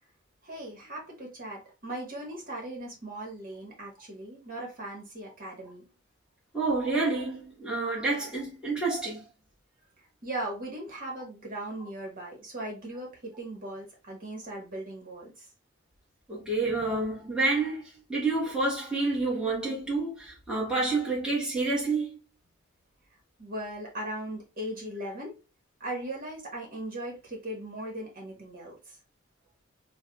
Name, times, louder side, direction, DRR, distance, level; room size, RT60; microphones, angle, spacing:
voice 1, 0.4-5.8 10.2-15.5 23.4-25.4 25.8-29.0, right 1 dB, 45° right, 1.4 m, -38 dB
voice 2, 6.5-9.3 16.3-17.8 18.1-22.2, right 3 dB, 5° right, 1.2 m, -28 dB
5.6 x 2.2 x 2.3 m
head